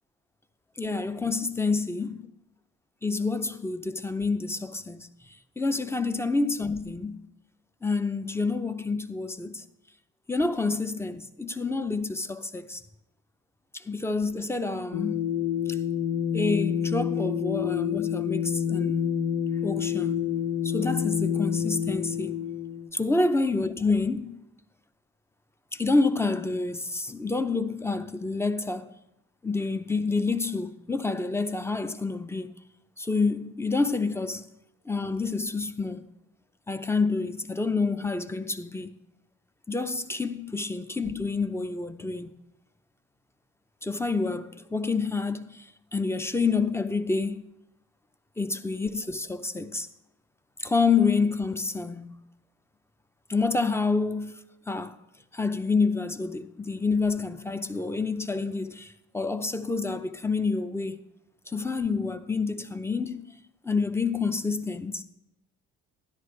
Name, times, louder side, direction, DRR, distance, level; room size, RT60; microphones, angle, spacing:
voice 1, 0.8-2.3 3.0-5.1 5.6-7.2 7.8-9.6 10.3-12.8 13.7-15.2 15.7-15.8 16.3-19.1 19.6-20.4 20.6-22.4 22.9-24.4 25.7-28.9 29.4-32.5 33.0-34.5 34.9-36.0 36.7-38.9 39.7-42.3 43.8-47.4 48.4-49.9 50.6-52.2 53.3-54.3 54.7-55.0 55.3-61.0 61.5-63.3 63.6-65.0, left 4 dB, 10° left, 0.6 m, -28 dB
sound 1, 14.9-22.9, left 8 dB, 80° left, 0.8 m, -28 dB
13.0 x 11.0 x 3.2 m
cardioid pair, 90°, 30 cm